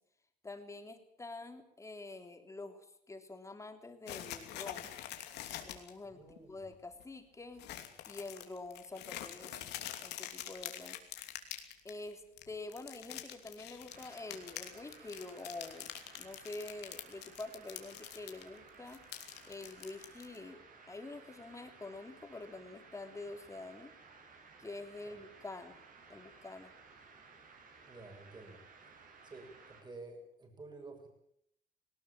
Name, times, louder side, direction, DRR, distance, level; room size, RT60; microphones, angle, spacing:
voice 1, 0.4-4.9 5.6-7.7 8.1-9.8 10.0-11.0 11.8-19.0 19.5-23.9 24.6-25.8 26.1-26.7, left 2 dB, 15° left, 6 dB, 3.4 m, -47 dB
sound 1, 4.1-5.9 6.3-6.4 6.7-7.0 7.6-12.1 12.4-18.4 18.7-20.4, left 12 dB, 85° left, 2.9 m, -45 dB
voice 2, 6.1-6.5 25.1-25.2 27.9-28.6 29.2-31.1, right 3 dB, 25° right, 3 dB, 7.3 m, -51 dB
sound 2, 13.9-29.8, right 4 dB, 55° right, 7.6 m, -58 dB
19.5 x 19.0 x 8.8 m, 0.71 s
cardioid pair, 110°, 17 cm